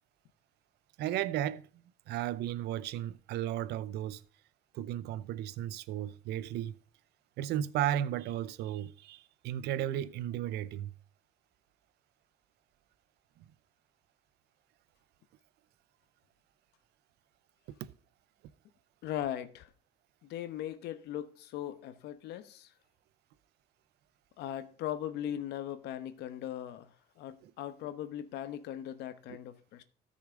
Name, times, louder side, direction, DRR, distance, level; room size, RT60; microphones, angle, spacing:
voice 1, 1.0-1.7 2.1-4.2 4.7-6.8 7.4-10.9 17.7-17.8 27.4-27.5, right 11 dB, 75° right, 0.6 m, -34 dB
voice 2, 19.0-19.7 20.3-22.7 24.4-29.8, left 11 dB, 80° left, 1.1 m, -39 dB
14.0 x 6.5 x 3.7 m
cardioid pair, 110°, 17 cm